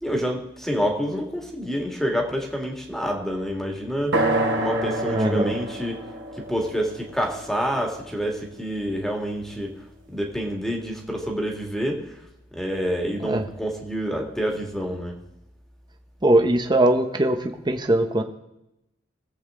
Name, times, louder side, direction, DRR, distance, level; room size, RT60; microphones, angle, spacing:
voice 1, 0.0-6.0 6.3-9.8 10.1-12.2 12.5-15.2, equal, ahead, 1 dB, 2.0 m, -28 dB
sound 1, 4.1-8.0, right 2 dB, 70° right, 2.5 m, -27 dB
voice 2, 5.1-5.5 13.2-13.4 16.2-18.2, right 1 dB, 20° right, 6 dB, 0.9 m, -21 dB
21.5 x 7.9 x 3.7 m, 0.88 s
head